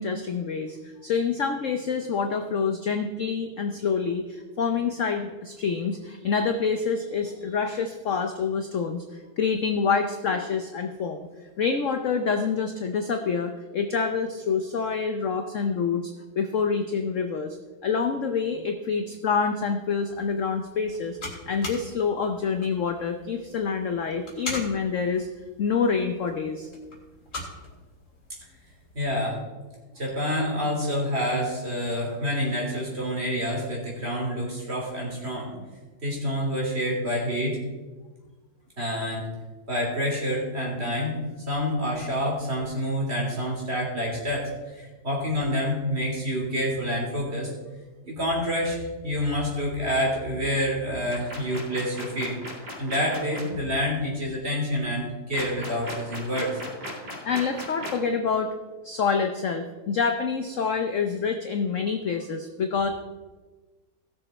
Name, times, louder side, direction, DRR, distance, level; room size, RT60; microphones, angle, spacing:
voice 1, 0.0-11.3 11.6-17.6 17.8-21.2 21.5-25.3 25.6-26.7 41.5-41.6 57.2-58.5 58.8-62.9, left 5 dB, 70° left, 6 dB, 0.7 m, -27 dB
sound 1, 20.0-29.2, left 2 dB, 40° left, 2.9 m, -42 dB
voice 2, 28.9-29.4 29.9-35.5 36.0-37.6 38.8-39.3 39.7-41.2 41.5-47.5 48.1-56.6, equal, 30° right, -2 dB, 3.2 m, -28 dB
sound 2, 51.1-53.4 55.3-58.1, equal, 50° right, 3.1 m, -36 dB
17.0 x 6.8 x 4.3 m, 1.3 s
omnidirectional pair, 2.2 m